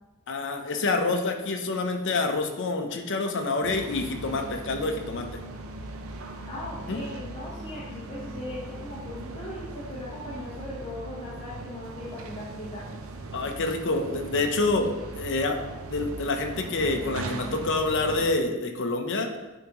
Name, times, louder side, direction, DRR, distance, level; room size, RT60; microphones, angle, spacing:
voice 1, 0.3-5.3 6.9-7.0 13.3-15.6 15.9-19.3, left 3 dB, 60° left, 4 dB, 0.7 m, -27 dB
sound 1, 3.6-18.4, right 2 dB, 70° right, 0.5 m, -39 dB
voice 2, 6.4-12.9 13.4-13.5, left 1 dB, 30° left, -8 dB, 1.1 m, -39 dB
9.2 x 3.6 x 3.0 m, 1.1 s
head